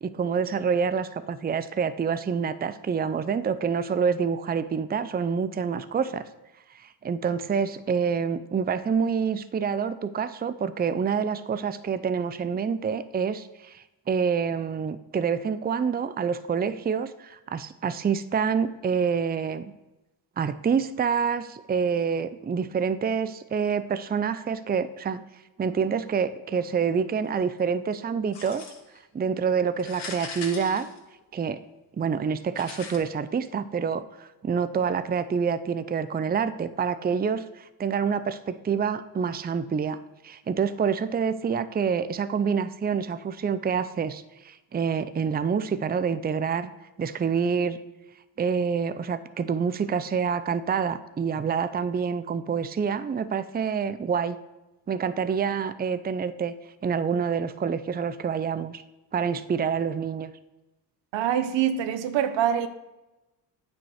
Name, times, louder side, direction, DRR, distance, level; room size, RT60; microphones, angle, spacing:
voice 1, 0.0-6.2 7.0-19.7 20.4-25.2 25.6-28.6 29.1-30.9 31.3-31.6 32.0-40.0 40.2-46.7 47.0-47.8 48.4-54.4 54.9-56.6 56.8-58.8 59.1-60.3, right 6 dB, 20° right, 0.5 m, -27 dB
sound 1, 28.3-29.0 29.8-31.5 32.6-33.0, left 4 dB, 70° left, 2.7 m, -40 dB
voice 2, 61.1-62.7, right 9 dB, 80° right, 0.9 m, -24 dB
9.1 x 5.3 x 6.4 m
cardioid pair, 75°, 43 cm